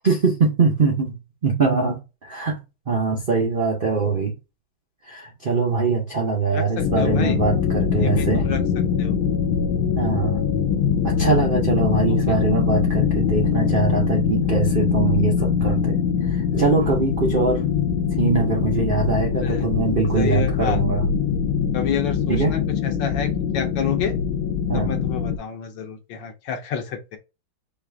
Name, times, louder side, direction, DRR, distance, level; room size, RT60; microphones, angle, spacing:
voice 1, 0.0-2.6 2.9-4.3 5.1-8.5 10.0-10.4 11.0-16.0 16.3-17.6 18.2-21.0 22.3-22.5 24.7-24.9, right 4 dB, 75° right, 0.4 m, -22 dB
voice 2, 6.5-7.4 8.0-8.6 9.0-9.1 12.1-12.4 19.4-19.7 20.1-20.8 21.7-24.1 24.7-27.2, left 8 dB, 70° left, 1.4 m, -29 dB
sound 1, 6.8-25.4, left 7 dB, 90° left, 1.5 m, -22 dB
4.7 x 2.4 x 3.3 m
omnidirectional pair, 2.2 m